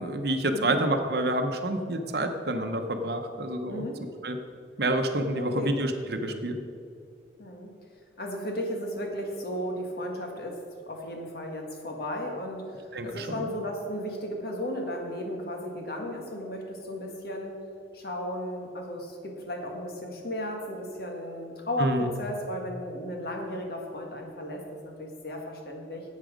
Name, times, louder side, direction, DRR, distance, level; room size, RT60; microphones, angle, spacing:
voice 1, 0.0-3.8 4.2-4.4 4.8-6.6 12.9-13.5 21.8-22.1, right 1 dB, 55° right, 6 dB, 0.9 m, -28 dB
voice 2, 3.7-4.0 5.4-5.7 7.4-7.7 8.2-10.6 10.9-12.7 13.0-17.5 17.9-26.0, equal, 55° left, 2 dB, 1.7 m, -35 dB
11.0 x 8.3 x 5.1 m, 2.4 s
head